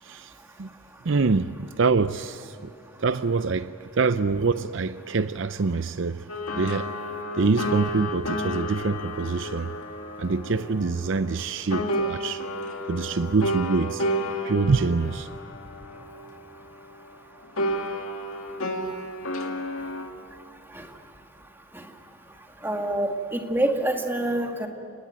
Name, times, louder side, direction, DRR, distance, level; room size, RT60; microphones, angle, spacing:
voice 1, 0.0-0.3 0.6-0.7 1.0-2.7 3.0-6.3 6.5-6.9 7.3-9.7 10.2-12.4 12.9-14.1 14.4-15.3, right 4 dB, 55° right, 0.6 m, -25 dB
sound 1, 6.3-11.4 11.7-17.2 17.6-20.1, equal, 75° left, 2.2 m, -31 dB
voice 2, 22.6-24.7, right 1 dB, 10° right, 2.1 m, -27 dB
30.0 x 19.5 x 9.2 m
head